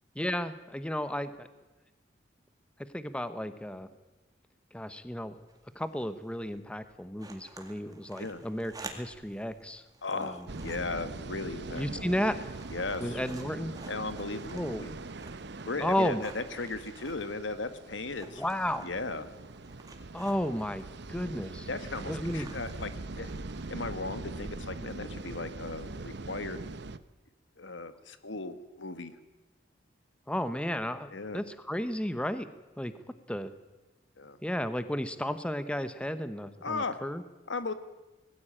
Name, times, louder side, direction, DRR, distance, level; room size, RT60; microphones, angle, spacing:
voice 1, 0.2-1.5 2.9-3.9 4.7-5.4 5.7-9.8 10.1-10.4 11.7-12.3 13.0-13.7 14.5-14.8 15.8-16.2 18.4-18.9 20.1-21.7 22.0-22.5 30.3-32.5 32.8-32.9 33.3-33.5 34.4-37.2, equal, 5° left, 12 dB, 0.9 m, -33 dB
sound 1, 5.2-24.1, right 3 dB, 20° right, 2.2 m, -53 dB
voice 2, 10.0-12.1 12.7-13.2 13.9-14.9 15.7-18.4 18.8-19.3 21.7-22.9 23.2-23.3 23.7-26.6 27.6-29.1 31.1-31.4 34.2-34.4 36.6-37.0 37.5-37.7, left 3 dB, 80° left, 11 dB, 1.6 m, -36 dB
sound 2, 10.5-27.0, right 3 dB, 65° right, 0.9 m, -42 dB
20.5 x 15.0 x 8.9 m, 1.1 s
head